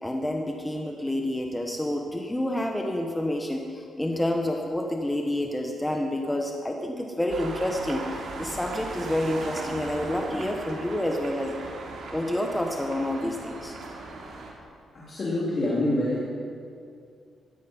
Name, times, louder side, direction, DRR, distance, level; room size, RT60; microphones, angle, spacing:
voice 1, 0.0-11.7 12.1-13.8, left 1 dB, 10° left, 2 dB, 1.2 m, -29 dB
sound 1, 7.3-14.5, right 3 dB, 70° right, 3.2 m, -38 dB
voice 2, 14.9-16.3, left 1 dB, 40° left, -7 dB, 3.3 m, -26 dB
16.5 x 14.0 x 5.5 m, 2.4 s
cardioid pair, 110°, 0 cm